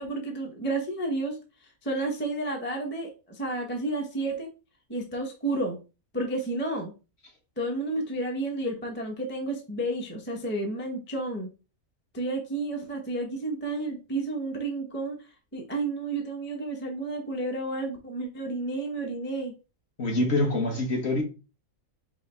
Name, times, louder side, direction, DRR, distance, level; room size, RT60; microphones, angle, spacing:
voice 1, 0.0-4.5 4.9-5.8 6.1-6.9 7.6-11.5 12.1-15.2 15.5-19.5, right 2 dB, 10° left, 0.7 m, -31 dB
voice 2, 20.0-21.2, left 2 dB, 50° left, 1.4 m, -25 dB
4.8 x 2.7 x 3.3 m
omnidirectional pair, 1.5 m